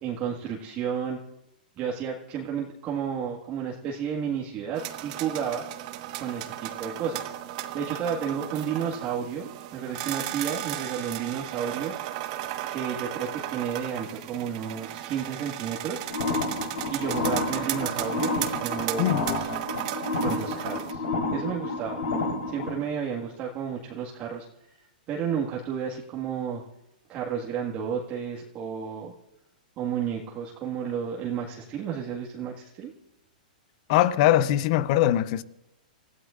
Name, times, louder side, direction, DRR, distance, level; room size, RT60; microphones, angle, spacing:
voice 1, 0.0-1.2 1.8-5.6 6.2-7.3 7.7-11.9 12.7-16.0 16.9-19.7 20.2-21.0 21.3-22.1 22.5-24.5 25.1-26.6 27.1-29.1 29.8-32.9, right 7 dB, 30° right, 1.9 m, -32 dB
sound 1, 4.7-20.9, right 13 dB, 50° right, 1.4 m, -35 dB
sound 2, 16.1-22.7, left 3 dB, 75° left, 3.9 m, -30 dB
voice 2, 33.9-35.4, left 13 dB, 50° left, 0.8 m, -21 dB
29.0 x 15.5 x 2.6 m
hypercardioid pair, 130°, 5 cm